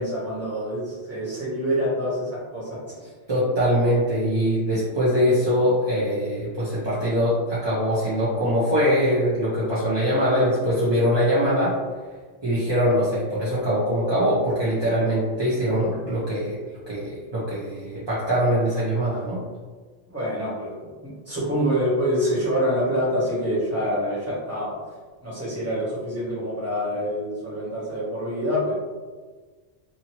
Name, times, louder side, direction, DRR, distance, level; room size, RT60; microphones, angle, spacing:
voice 1, 0.0-3.1 20.1-24.8 25.2-28.8, equal, 15° right, -8 dB, 1.1 m, -26 dB
voice 2, 3.3-11.7 12.4-16.6 16.9-19.4, equal, 30° right, -9 dB, 0.5 m, -22 dB
2.8 x 2.6 x 2.9 m, 1.4 s
omnidirectional pair, 1.2 m